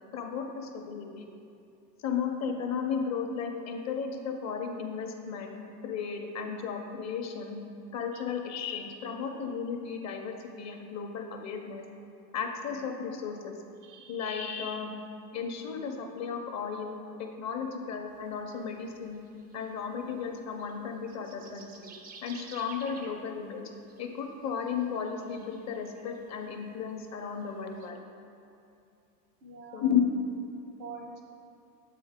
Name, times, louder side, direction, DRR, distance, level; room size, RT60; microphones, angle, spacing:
voice 1, 0.1-1.3 2.0-5.6 5.8-7.6 7.9-11.8 12.3-13.5 14.1-14.9 15.3-19.2 19.5-21.9 22.2-23.6 24.0-28.0 29.7-30.0, left 6 dB, 35° left, 3 dB, 0.7 m, -34 dB
voice 2, 13.8-14.2 29.4-29.9 30.5-31.2, right 5 dB, 85° right, 2 dB, 1.2 m, -46 dB
sound 1, 18.1-20.7 21.0-23.2 23.9-24.2 24.5-26.7 27.2-27.9, right 4 dB, 20° right, 0.4 m, -52 dB
6.9 x 4.6 x 3.6 m, 2.6 s
supercardioid pair, 110°, 49 cm